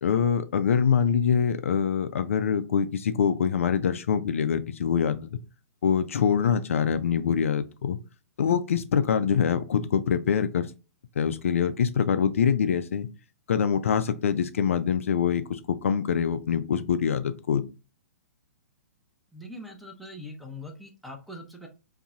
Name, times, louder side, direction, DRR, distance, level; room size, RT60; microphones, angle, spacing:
voice 1, 0.0-5.3 5.8-8.0 8.4-10.7 11.2-13.1 13.5-17.6, left 7 dB, 55° left, 11 dB, 0.3 m, -24 dB
voice 2, 19.3-21.7, left 1 dB, ahead, 0 dB, 0.6 m, -42 dB
3.8 x 2.7 x 2.3 m, 0.31 s
figure-of-eight pair, 115°, 9 cm